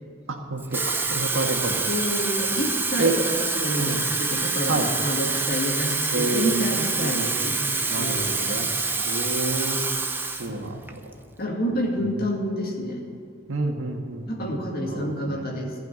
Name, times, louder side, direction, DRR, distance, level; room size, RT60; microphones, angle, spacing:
voice 1, 0.3-1.8 2.5-2.6 3.0-3.2 3.8-4.0 4.7-4.9 6.1-6.6 7.0-7.4 7.9-8.7 9.0-9.8 10.4-11.1 13.5-14.5 14.8-15.5, right 2 dB, 85° right, 2 dB, 1.7 m, -29 dB
Water tap faucet / Fill (with liquid), 0.6-10.5 10.9-11.1, right 3 dB, 10° right, 0.7 m, -26 dB
voice 2, 1.7-8.4 10.3-10.7 11.4-13.0 14.3-15.7, equal, 50° left, 0 dB, 2.3 m, -29 dB
15.0 x 5.9 x 9.6 m, 2.4 s
head